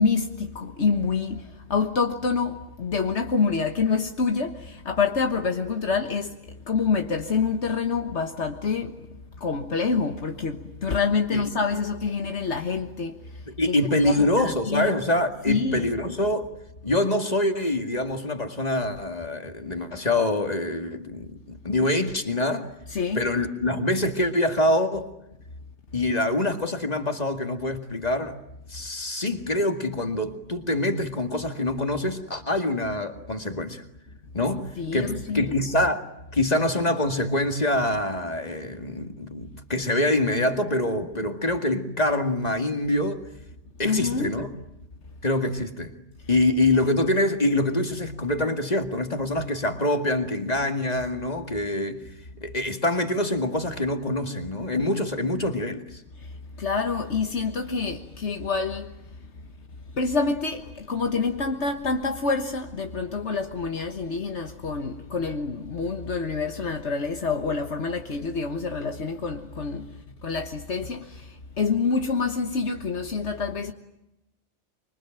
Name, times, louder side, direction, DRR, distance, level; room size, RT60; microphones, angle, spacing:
voice 1, 0.0-6.4 6.6-9.1 9.4-13.8 14.0-14.9 15.5-15.9 22.9-23.2 34.8-35.5 43.8-44.3 56.2-58.9 59.9-69.9 70.2-73.7, left 4 dB, 75° left, 1.7 m, -27 dB
voice 2, 13.5-16.5 16.8-22.7 23.1-25.1 25.9-28.4 28.7-33.8 34.3-36.0 36.3-43.2 43.8-44.5 45.2-45.9 46.3-52.0 52.4-55.8, left 1 dB, 35° left, 2.2 m, -25 dB
26.0 x 24.5 x 9.1 m
omnidirectional pair, 1.2 m